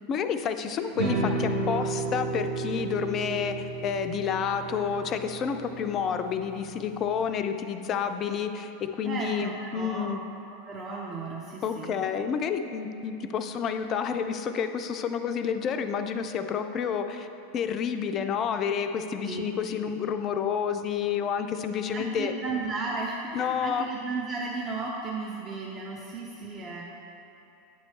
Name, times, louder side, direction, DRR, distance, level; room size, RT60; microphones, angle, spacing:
voice 1, 0.1-10.2 11.6-17.3 17.5-22.3 23.3-23.9, left 7 dB, 35° left, 8 dB, 0.3 m, -29 dB
sound 1, 0.9-7.2, right 2 dB, 60° right, 1.2 m, -32 dB
voice 2, 9.0-10.1 10.5-12.0 19.2-19.4 21.9-26.8, right 3 dB, 30° right, -4 dB, 0.6 m, -34 dB
9.1 x 3.1 x 4.2 m, 2.9 s
figure-of-eight pair, 85°, 0 cm